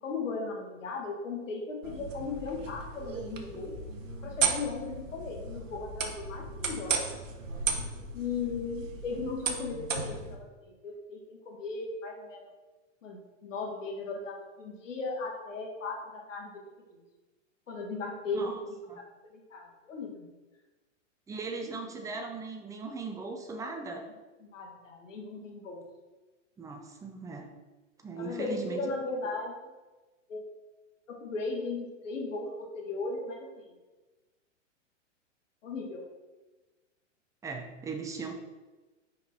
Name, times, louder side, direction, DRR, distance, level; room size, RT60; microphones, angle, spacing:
voice 1, 0.0-3.8 4.2-7.1 8.1-12.5 13.0-16.6 16.9-17.0 17.7-18.8 19.3-20.3 24.4-25.8 28.2-29.7 30.3-30.4 31.1-33.7 35.6-36.1, left 3 dB, 80° left, 0 dB, 1.5 m, -37 dB
sound 1, 1.8-10.3, right 5 dB, 85° right, 1.1 m, -35 dB
voice 2, 21.3-24.1 26.6-27.5 28.0-29.0 37.4-38.3, right 3 dB, 10° right, 4 dB, 0.6 m, -38 dB
5.5 x 5.1 x 4.1 m, 1.2 s
hypercardioid pair, 120°, 38 cm